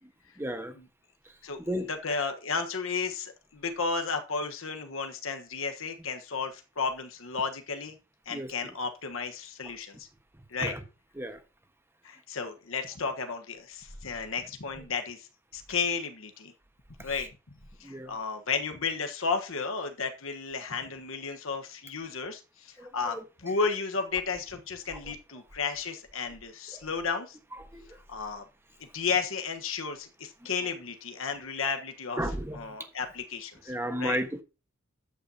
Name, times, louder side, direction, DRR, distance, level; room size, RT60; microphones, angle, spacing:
voice 1, 0.4-0.7 1.2-1.3 1.6-1.9 8.3-8.5 10.6-10.8 11.1-11.4 17.8-18.2 22.8-23.2 25.1-25.2 26.7-26.9 27.7-27.9 32.2-32.8 33.7-34.4, equal, 10° right, 7 dB, 1.3 m, -33 dB
voice 2, 1.9-8.0 8.3-10.1 10.5-10.7 12.0-15.3 15.5-16.5 17.0-17.3 17.8-27.4 28.1-28.4 28.9-32.2 32.5-34.2, left 5 dB, 70° left, 5 dB, 1.2 m, -33 dB
12.5 x 8.8 x 2.8 m, 0.30 s
head